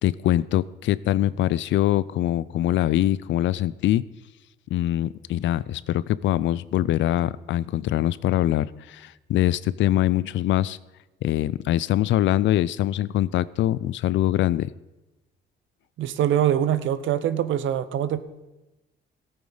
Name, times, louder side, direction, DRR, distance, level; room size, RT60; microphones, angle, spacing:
voice 1, 0.0-4.0 4.7-10.8 11.2-14.7, left 13 dB, 70° left, 19 dB, 0.4 m, -23 dB
voice 2, 16.0-18.4, right 10 dB, 75° right, 14 dB, 0.7 m, -24 dB
14.5 x 8.8 x 3.9 m, 1.0 s
cardioid pair, 90°, 20 cm